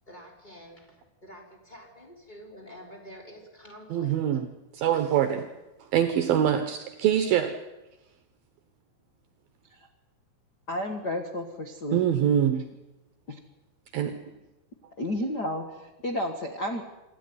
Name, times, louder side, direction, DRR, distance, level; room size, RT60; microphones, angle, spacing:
voice 1, 0.1-4.2, equal, 10° left, 2 dB, 3.6 m, -48 dB
voice 2, 3.9-4.5 4.7-5.5 5.9-7.5 11.9-12.6 13.9-14.2, right 10 dB, 70° right, 9 dB, 2.6 m, -24 dB
voice 3, 10.7-12.1 13.3-13.4 15.0-16.8, left 1 dB, 65° left, 5 dB, 1.0 m, -32 dB
26.5 x 12.5 x 9.6 m, 1.0 s
omnidirectional pair, 4.7 m